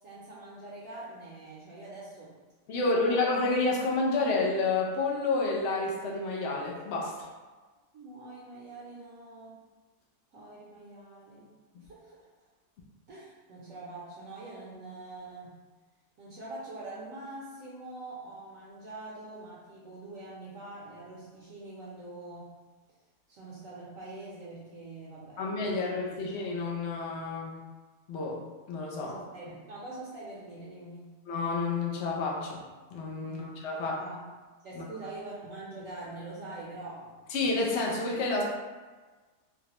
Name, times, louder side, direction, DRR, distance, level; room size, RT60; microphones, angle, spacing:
voice 1, 0.0-2.3 2.7-3.2 7.9-9.6 10.3-11.4 11.8-12.2 13.1-15.5 16.2-22.5 23.3-25.8 26.1-26.3 29.0-31.2 33.2-33.5 33.8-34.3 34.6-37.3, right 2 dB, 65° right, -7 dB, 0.9 m, -44 dB
voice 2, 2.7-7.3 25.4-27.5 28.1-28.4 28.7-29.2 31.3-32.6 32.9-34.0 34.7-34.8 37.3-38.4, left 3 dB, 70° left, -2 dB, 0.6 m, -29 dB
3.9 x 2.1 x 2.9 m, 1.3 s
omnidirectional pair, 1.8 m